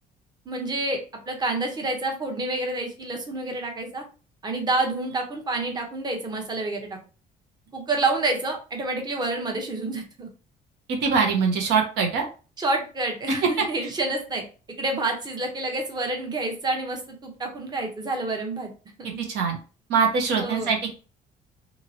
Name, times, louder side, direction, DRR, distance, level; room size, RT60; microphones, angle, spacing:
voice 1, 0.5-1.0 1.3-4.0 4.4-7.0 7.7-10.3 12.6-14.4 14.8-18.7 19.0-19.2 20.4-20.7, right 2 dB, 25° right, 2 dB, 0.8 m, -28 dB
voice 2, 10.9-12.2 13.6-13.7 19.2-19.6 19.9-20.9, right 5 dB, 80° right, 2 dB, 0.9 m, -23 dB
2.9 x 2.8 x 2.7 m, 0.35 s
cardioid pair, 110°, 17 cm